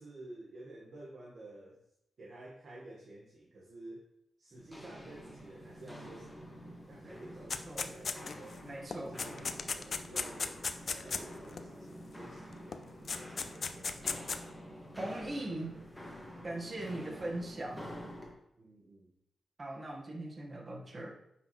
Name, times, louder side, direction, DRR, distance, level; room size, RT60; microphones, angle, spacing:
voice 1, 0.0-1.8 2.2-4.0 4.4-8.6 9.0-14.2 18.6-19.1, right 2 dB, 65° right, -4 dB, 1.5 m, -52 dB
Walk footsteps, 4.5-18.3, equal, 5° left, 1.9 m, -48 dB
sound 1, 7.5-8.5 8.9-11.6 12.7-12.8 13.1-14.4, left 5 dB, 55° left, 0.5 m, -36 dB
voice 2, 8.6-9.2 15.0-15.7 16.4-17.9 19.6-21.1, right 1 dB, 35° right, 0 dB, 1.5 m, -40 dB
9.4 x 5.8 x 3.1 m, 0.80 s
wide cardioid pair, 100°, 0 cm